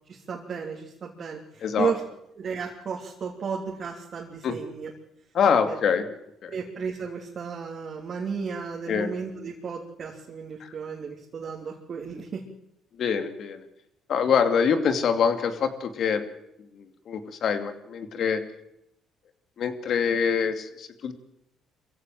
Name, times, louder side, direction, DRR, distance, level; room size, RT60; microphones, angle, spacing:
voice 1, 0.1-2.0 2.3-4.9 5.7-5.8 6.5-12.4, right 6 dB, 50° right, -1 dB, 3.2 m, -33 dB
voice 2, 1.6-1.9 4.4-4.6 5.3-6.1 6.4-6.5 8.9-9.1 10.6-10.7 13.0-13.6 14.1-16.2 16.7-18.4 19.6-21.1, left 6 dB, 60° left, 9 dB, 2.5 m, -25 dB
23.5 x 15.5 x 7.6 m, 0.80 s
supercardioid pair, 75°, 0 cm